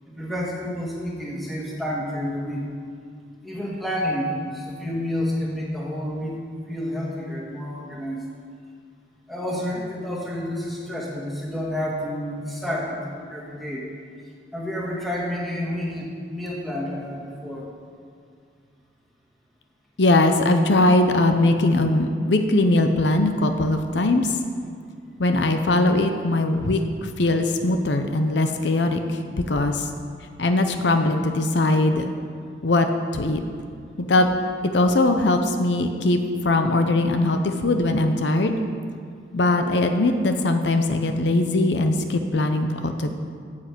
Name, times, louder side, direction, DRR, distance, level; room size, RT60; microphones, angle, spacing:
voice 1, 0.1-2.7 3.4-6.4 6.7-8.2 9.3-13.8 14.5-17.7, equal, ahead, -5 dB, 2.0 m, -29 dB
voice 2, 20.0-24.4 25.2-29.9 30.4-32.1 32.6-32.9 33.1-33.4 34.0-34.3 34.6-38.6 39.3-43.1, left 2 dB, 80° left, 6 dB, 0.7 m, -21 dB
9.5 x 7.5 x 7.7 m, 2.2 s
head